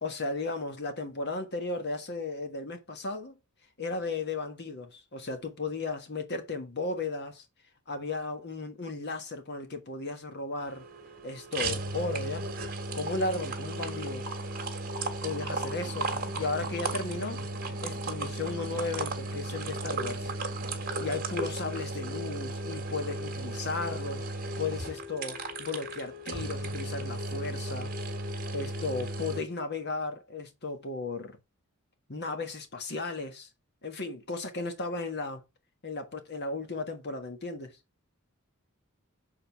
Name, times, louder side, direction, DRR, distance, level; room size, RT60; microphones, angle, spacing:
voice 1, 0.0-3.4 3.8-7.4 7.9-10.8 11.2-12.5 12.9-14.3 15.2-17.4 17.8-20.3 21.0-24.3 24.6-27.9 28.5-31.4 32.1-33.5 33.8-35.4 35.8-37.8, left 3 dB, 50° left, 1.5 m, -35 dB
sound 1, 10.6-29.4, right 2 dB, 45° right, 1.8 m, -35 dB
7.3 x 4.0 x 4.6 m
head